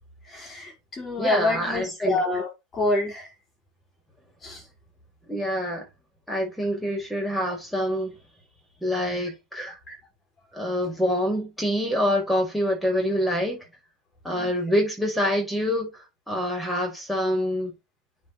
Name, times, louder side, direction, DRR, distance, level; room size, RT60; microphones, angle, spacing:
voice 1, 0.3-3.3 4.4-4.6 9.9-10.0 14.3-14.5, left 2 dB, 20° left, 5.5 m, -27 dB
voice 2, 1.2-2.2 5.3-5.8 6.3-8.1 8.8-9.8 10.5-13.6 14.2-15.9 16.3-17.7, equal, ahead, 5.7 m, -26 dB
9.4 x 5.6 x 3.3 m
figure-of-eight pair, 90°, 0 cm